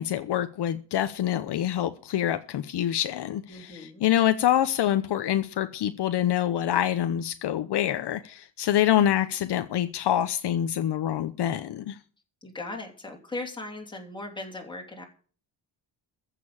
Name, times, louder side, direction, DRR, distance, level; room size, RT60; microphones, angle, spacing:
voice 1, 0.0-12.0, left 11 dB, 60° left, 0.9 m, -26 dB
voice 2, 3.5-4.0 12.4-15.1, left 2 dB, 10° left, 3.2 m, -38 dB
15.0 x 6.9 x 8.6 m
wide cardioid pair, 175°, 45 cm